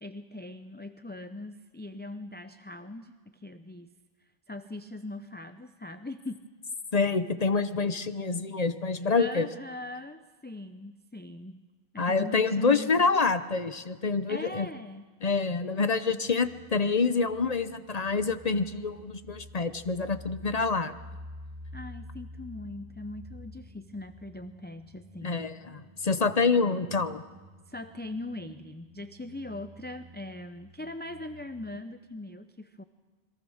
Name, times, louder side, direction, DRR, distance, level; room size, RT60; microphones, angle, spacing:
voice 1, 0.0-3.9 4.5-6.4 9.0-11.7 11.9-12.9 14.3-15.0 21.7-25.5 27.7-32.8, left 2 dB, 10° left, 9 dB, 0.6 m, -41 dB
voice 2, 6.9-9.5 12.0-14.7 15.2-20.9 25.2-27.2, left 4 dB, 40° left, 12 dB, 0.8 m, -27 dB
sound 1, 16.4-31.5, left 1 dB, 35° right, 2.5 m, -49 dB
27.5 x 22.0 x 6.4 m, 1.3 s
omnidirectional pair, 1.0 m